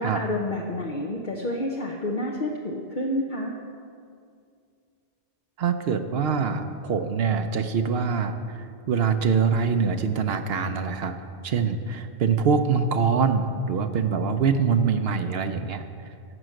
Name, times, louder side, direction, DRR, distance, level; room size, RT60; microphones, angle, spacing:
voice 1, 0.0-3.5, left 1 dB, 50° left, 0 dB, 1.0 m, -29 dB
voice 2, 5.6-11.1 11.4-15.8, right 6 dB, 70° right, 9 dB, 0.9 m, -24 dB
11.0 x 6.1 x 7.7 m, 2.3 s
omnidirectional pair, 1.1 m